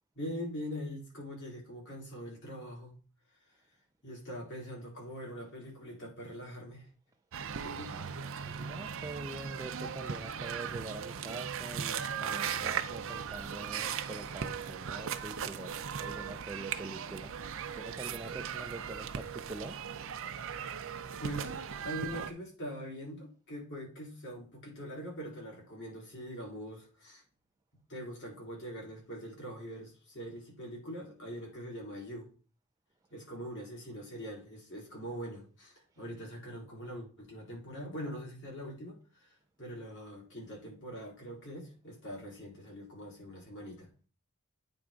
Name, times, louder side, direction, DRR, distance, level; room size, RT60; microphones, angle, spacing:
voice 1, 0.1-2.9 4.0-6.9 7.6-7.9 21.1-21.6 21.8-27.2 27.9-32.3 33.1-39.3 39.6-43.9, equal, 55° left, 3.4 m, -43 dB
sound 1, 7.3-22.3, right 7 dB, 60° right, 0.6 m, -38 dB
voice 2, 8.4-17.3 17.7-19.8 35.9-36.0, right 2 dB, 15° right, 0.4 m, -45 dB
8.7 x 3.5 x 5.0 m
head